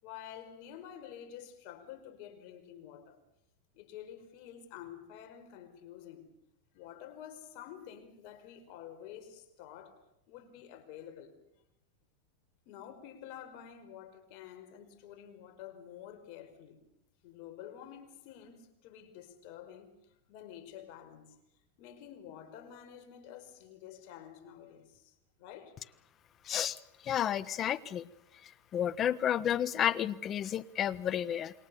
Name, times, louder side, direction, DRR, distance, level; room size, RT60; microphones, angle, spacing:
voice 1, 0.0-3.2 3.7-6.3 6.7-10.0 10.3-11.4 12.7-16.8 17.2-21.4 21.8-25.8, left 10 dB, 55° left, 5.2 m, -49 dB
voice 2, 26.5-26.8 27.0-28.1 28.7-31.5, left 10 dB, 30° left, 1.3 m, -31 dB
28.0 x 22.5 x 7.1 m
hypercardioid pair, 120°, 0 cm